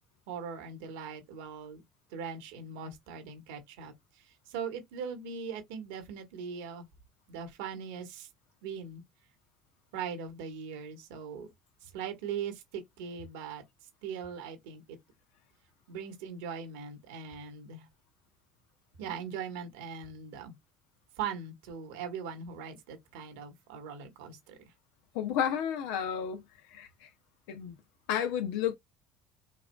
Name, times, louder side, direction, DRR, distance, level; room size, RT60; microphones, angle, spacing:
voice 1, 0.3-1.8 2.1-6.9 7.3-8.3 8.6-9.0 9.9-11.5 11.8-13.6 14.0-15.0 15.9-17.9 19.0-20.5 21.2-24.6, right 6 dB, 80° right, 1.3 m, -40 dB
voice 2, 25.1-26.4 26.7-27.1 27.5-27.7 28.1-28.8, left 9 dB, 75° left, 0.6 m, -31 dB
4.7 x 2.5 x 2.2 m
hypercardioid pair, 80°, 0 cm